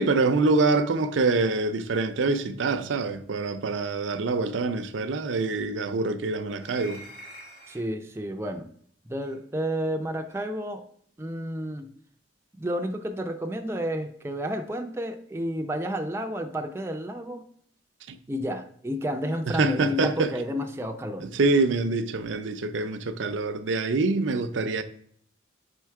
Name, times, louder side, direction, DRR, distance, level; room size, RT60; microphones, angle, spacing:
voice 1, 0.0-7.0 18.1-18.2 19.5-20.3 21.2-24.8, right 3 dB, 80° right, 0.5 m, -25 dB
sound 1, 6.6-7.9 9.2-9.4 10.3-10.4, right 1 dB, 50° left, 2.7 m, -46 dB
voice 2, 7.7-8.7 9.1-10.8 11.2-11.9 12.6-17.5 18.3-21.3, equal, 15° right, 0.4 m, -31 dB
5.0 x 4.5 x 4.7 m
head